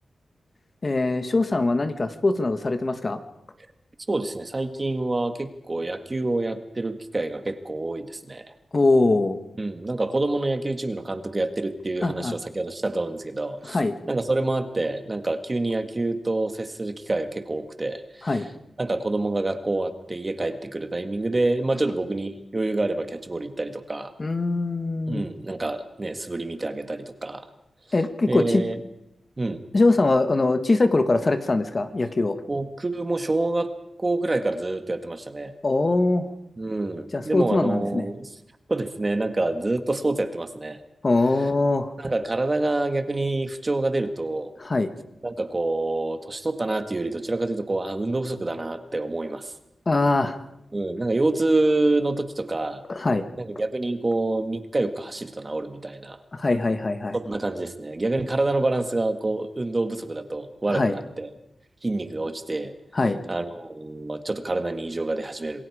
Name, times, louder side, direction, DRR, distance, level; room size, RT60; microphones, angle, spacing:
voice 1, 0.8-3.2 8.7-9.4 12.0-12.3 13.7-13.9 18.2-18.5 24.2-25.2 27.9-28.6 29.7-32.4 35.6-36.3 37.1-38.0 41.0-41.9 44.6-44.9 49.9-50.4 52.9-53.2 56.3-57.2 60.7-60.9 62.9-63.2, left 2 dB, 35° left, 8 dB, 1.4 m, -22 dB
voice 2, 4.1-8.4 9.6-13.8 14.1-18.5 18.8-24.1 25.1-27.5 28.3-28.8 29.4-29.6 32.5-33.7 34.0-35.5 36.6-38.3 38.7-40.8 42.0-44.5 45.2-49.5 50.7-52.8 53.4-56.2 57.1-61.3 61.8-62.7 63.3-65.6, right 2 dB, 25° right, 8 dB, 1.7 m, -27 dB
27.5 x 21.5 x 4.9 m, 0.85 s
wide cardioid pair, 120°, 0 cm